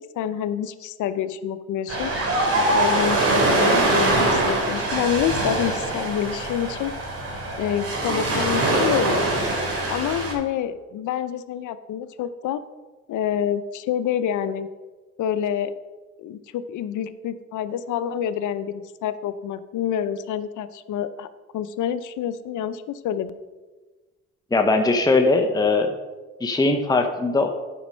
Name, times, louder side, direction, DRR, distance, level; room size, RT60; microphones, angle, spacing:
voice 1, 0.2-2.1 2.7-6.9 7.6-9.2 9.9-12.6 13.1-14.7 15.2-15.8 16.2-21.3 21.5-23.3, left 9 dB, 80° left, 12 dB, 0.7 m, -27 dB
Ocean, 1.9-10.3, right 2 dB, 50° right, 2.9 m, -23 dB
voice 2, 24.5-25.9 26.4-27.5, left 3 dB, 15° left, 4 dB, 0.7 m, -20 dB
8.7 x 5.3 x 6.2 m, 1.2 s
cardioid pair, 90°, 30 cm